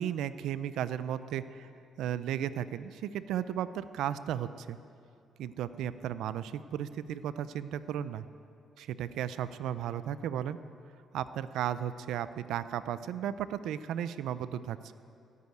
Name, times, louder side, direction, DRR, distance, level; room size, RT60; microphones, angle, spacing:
voice 1, 0.0-1.7 2.0-4.8 5.4-8.2 8.8-10.6 11.1-14.8, right 10 dB, 85° right, 14 dB, 0.6 m, -35 dB
16.5 x 8.5 x 9.3 m, 2.5 s
cardioid pair, 90°, 0 cm